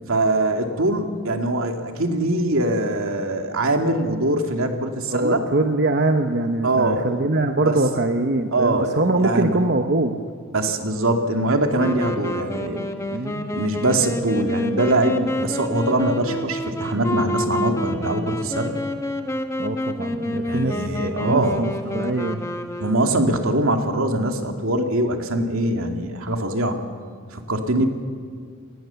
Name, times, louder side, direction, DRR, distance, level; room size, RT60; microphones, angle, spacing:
voice 1, 0.1-5.4 6.6-7.0 7.6-7.8 8.5-9.6 10.5-12.9 13.5-18.8 20.4-21.7 22.8-26.8 27.3-27.9, right 1 dB, 80° right, 4 dB, 2.4 m, -22 dB
voice 2, 5.1-10.1 13.1-13.6 19.6-22.4, right 2 dB, 50° right, 6 dB, 1.0 m, -23 dB
Wind instrument woodwind instrument, 11.7-23.4, left 1 dB, 15° left, 1.2 m, -28 dB
29.0 x 19.0 x 7.0 m, 2.1 s
head